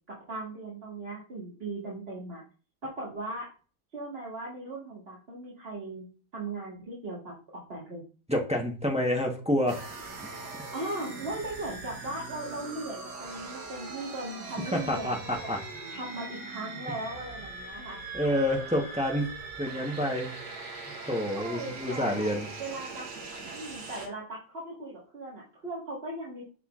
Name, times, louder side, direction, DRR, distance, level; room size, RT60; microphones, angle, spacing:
voice 1, 0.1-2.4 2.8-3.5 3.9-6.1 6.3-8.0 10.7-15.6 15.9-18.0 21.3-23.1 23.5-26.5, right 2 dB, 35° right, -5 dB, 1.7 m, -38 dB
voice 2, 8.3-9.8 14.7-15.6 18.1-19.3 19.6-20.3 21.1-22.5, left 1 dB, 5° right, 0 dB, 0.7 m, -28 dB
sound 1, 9.7-24.1, right 3 dB, 80° right, 1.8 m, -41 dB
7.8 x 5.8 x 2.4 m, 0.37 s
omnidirectional pair, 1.8 m